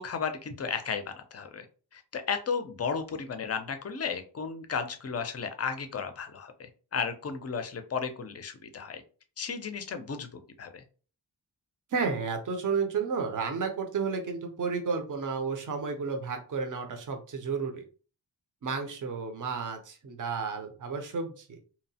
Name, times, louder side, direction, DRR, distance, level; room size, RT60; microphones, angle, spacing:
voice 1, 0.0-1.7 1.9-9.0 9.4-10.8, left 6 dB, 35° left, 8 dB, 0.4 m, -34 dB
voice 2, 11.9-17.8 18.6-21.6, right 5 dB, 50° right, 5 dB, 0.6 m, -32 dB
2.8 x 2.0 x 2.7 m, 0.38 s
wide cardioid pair, 110°, 42 cm